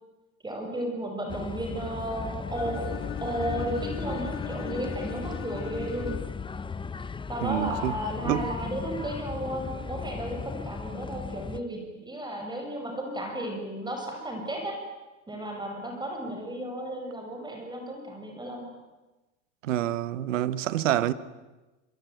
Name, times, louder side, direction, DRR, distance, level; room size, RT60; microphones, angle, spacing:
voice 1, 0.4-2.9 3.2-6.2 7.3-14.8 15.3-18.7, right 1 dB, 10° right, 7.0 m, -34 dB
sound 1, 1.3-11.6, left 5 dB, 15° left, 1.0 m, -36 dB
Bowed string instrument, 2.5-6.5, left 11 dB, 35° left, 2.1 m, -41 dB
voice 2, 7.4-7.9 8.2-8.4 19.6-21.1, right 12 dB, 75° right, 1.5 m, -27 dB
27.5 x 23.5 x 9.3 m
hypercardioid pair, 95°, 38 cm